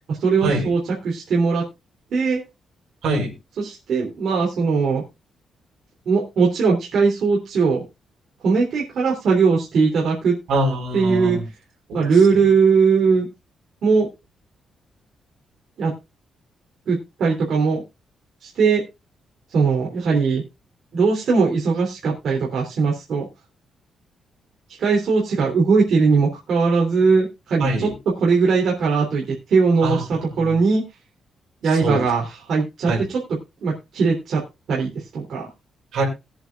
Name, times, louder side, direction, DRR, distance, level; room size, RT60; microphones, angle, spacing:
voice 1, 0.2-0.8 1.0-1.6 2.1-2.4 3.6-5.0 6.0-7.8 8.4-10.3 10.9-11.4 11.9-13.3 13.8-14.1 15.8-15.9 16.9-17.8 18.4-18.8 19.5-20.4 20.9-23.3 24.8-27.9 28.2-30.8 31.6-33.2 33.6-34.4 34.7-35.5, right 4 dB, 55° right, -3 dB, 3.3 m, -19 dB
voice 2, 3.0-3.3 10.5-11.5 11.9-12.0 12.3-12.4 27.6-27.9 29.8-30.6 31.8-32.1 32.9-33.0 35.9-36.0, right 2 dB, 75° right, 1 dB, 5.6 m, -24 dB
21.0 x 7.9 x 2.4 m, 0.25 s
cardioid pair, 180°, 0 cm